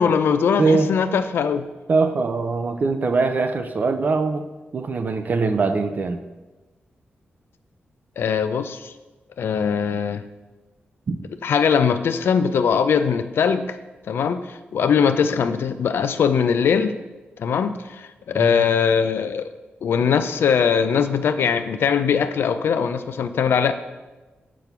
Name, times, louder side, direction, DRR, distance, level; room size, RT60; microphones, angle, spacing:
voice 1, 0.0-1.6 8.2-8.9 9.4-10.2 11.4-13.8 14.1-14.4 14.7-16.9 17.4-19.4 19.8-23.7, left 6 dB, 85° left, 10 dB, 0.5 m, -21 dB
voice 2, 0.6-0.9 1.9-4.5 4.7-6.2 11.1-11.2 18.3-18.7, right 4 dB, 50° right, 8 dB, 0.7 m, -22 dB
6.8 x 6.2 x 5.9 m, 1.2 s
wide cardioid pair, 115°, 4 cm